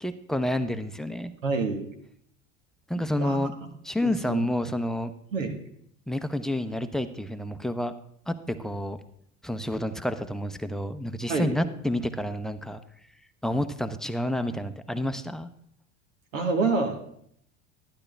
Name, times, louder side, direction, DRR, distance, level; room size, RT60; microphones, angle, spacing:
voice 1, 0.0-1.3 2.9-3.5 3.8-5.1 6.1-7.9 8.3-9.0 9.4-12.8 13.4-15.5, left 1 dB, ahead, 9 dB, 0.6 m, -29 dB
voice 2, 1.4-1.8 3.0-3.4 4.0-4.4 5.3-5.5 11.3-11.6 16.3-17.0, right 4 dB, 85° right, 5 dB, 1.5 m, -27 dB
11.5 x 10.0 x 3.3 m, 0.69 s
hypercardioid pair, 75°, 38 cm